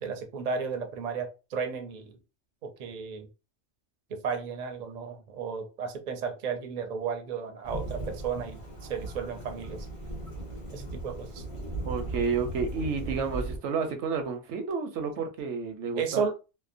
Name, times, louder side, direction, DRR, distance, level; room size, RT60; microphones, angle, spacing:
voice 1, 0.0-2.2 2.6-3.3 4.1-9.9 10.7-11.4 15.9-16.3, right 6 dB, 50° right, 5 dB, 0.5 m, -34 dB
Thunderstorm / Rain, 7.6-13.6, right 2 dB, 30° left, 0.9 m, -37 dB
voice 2, 11.9-16.2, right 5 dB, 80° right, 6 dB, 0.9 m, -31 dB
2.7 x 2.1 x 2.5 m, 0.30 s
omnidirectional pair, 1.2 m